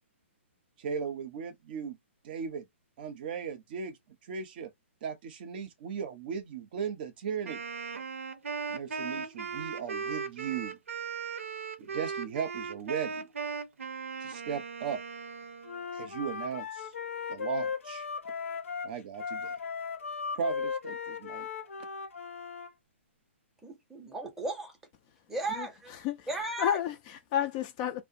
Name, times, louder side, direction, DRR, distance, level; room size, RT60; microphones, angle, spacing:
voice 1, 0.8-2.0 2.2-2.7 3.0-4.0 4.2-4.7 5.0-7.6 8.7-10.8 11.8-13.3 14.2-15.0 15.9-16.9 17.3-18.1 18.8-19.5 20.4-21.5, right 7 dB, 45° right, 0.6 m, -37 dB
Wind instrument woodwind instrument, 7.4-15.8, right 5 dB, 90° right, 0.5 m, -38 dB
Wind instrument woodwind instrument 2, 15.6-22.7, left 6 dB, 80° left, 0.6 m, -37 dB
voice 2, 23.6-24.8 25.3-25.9 26.3-26.8, right 2 dB, 5° right, 0.7 m, -35 dB
voice 3, 25.4-28.0, left 10 dB, 30° left, 0.4 m, -32 dB
2.4 x 2.1 x 2.6 m
hypercardioid pair, 145°, 7 cm